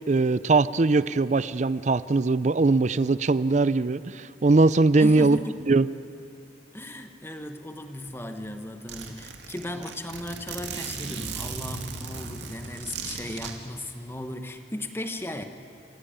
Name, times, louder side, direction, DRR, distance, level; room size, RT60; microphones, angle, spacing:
voice 1, 0.1-5.4 5.7-5.9, right 3 dB, 40° right, 16 dB, 0.5 m, -21 dB
voice 2, 4.9-5.6 6.7-15.4, left 1 dB, 15° left, 7 dB, 1.2 m, -36 dB
Zipper (clothing), 8.5-8.6 8.9-13.5, right 5 dB, 90° right, 2.3 m, -37 dB
27.0 x 15.5 x 8.9 m, 2.7 s
head